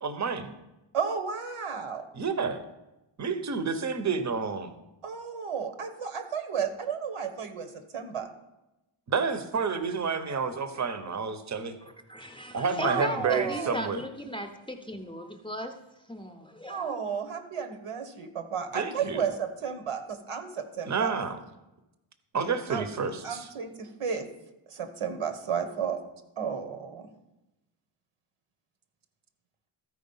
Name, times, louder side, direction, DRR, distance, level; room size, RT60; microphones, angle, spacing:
voice 1, 0.0-0.5 2.1-2.6 3.2-4.7 9.1-11.8 12.5-14.0 18.7-19.2 20.9-21.4 22.3-23.5, right 5 dB, 35° right, 0.7 m, -29 dB
voice 2, 0.9-2.0 5.0-8.3 12.8-13.9 16.7-21.1 22.7-22.8 23.2-24.3 24.7-26.0 26.4-27.1, right 7 dB, 85° right, 1.2 m, -33 dB
voice 3, 12.1-15.8 16.1-17.0, equal, 10° left, 0.6 m, -36 dB
13.5 x 4.7 x 5.4 m
wide cardioid pair, 175°, 50 cm